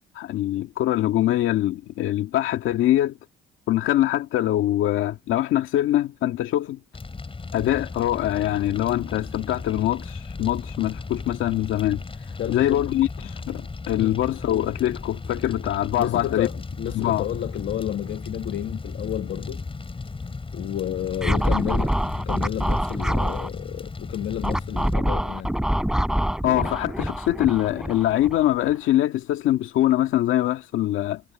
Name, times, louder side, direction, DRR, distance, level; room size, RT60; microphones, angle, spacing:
voice 1, 0.2-3.2 3.7-6.8 7.5-12.0 12.5-16.5 16.9-17.2 26.4-31.2, left 13 dB, 85° left, 2.0 m, -23 dB
Fire, 6.9-24.9, left 4 dB, 25° left, 5.9 m, -36 dB
voice 2, 12.4-12.8 14.0-14.2 15.9-19.6 20.5-22.0 22.2-25.5, left 11 dB, 70° left, 1.7 m, -31 dB
Scratching (performance technique), 21.2-23.5 24.4-28.7, equal, 5° right, 3.6 m, -25 dB
cardioid pair, 90°, 20 cm